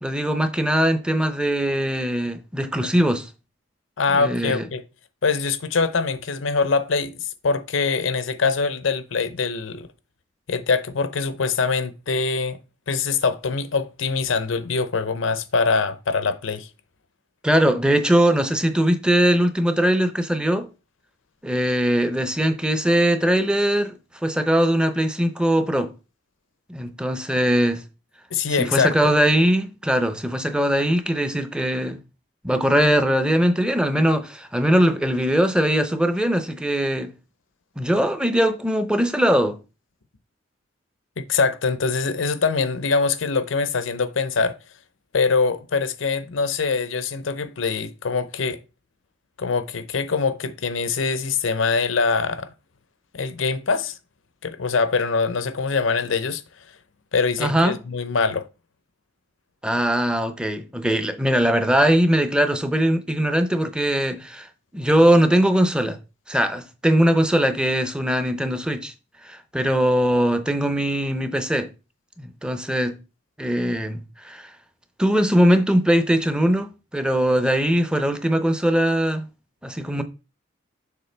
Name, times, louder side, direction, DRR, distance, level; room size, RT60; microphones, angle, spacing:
voice 1, 0.0-3.3 4.2-4.7 17.4-20.7 21.4-25.9 26.7-27.8 28.6-32.0 32.4-37.1 37.8-39.6 57.4-57.8 59.6-64.5 64.7-66.0 66.3-68.9 69.2-71.7 72.2-73.0 73.4-74.5 75.0-79.3 79.6-80.0, equal, 5° right, 0.6 m, -21 dB
voice 2, 4.0-4.8 5.2-9.9 10.5-12.6 12.9-16.7 28.3-29.1 41.2-44.6 45.1-48.6 49.4-52.5 53.1-54.0 54.4-56.4 57.1-58.5, left 4 dB, 80° left, 0.7 m, -23 dB
6.8 x 4.5 x 3.3 m
head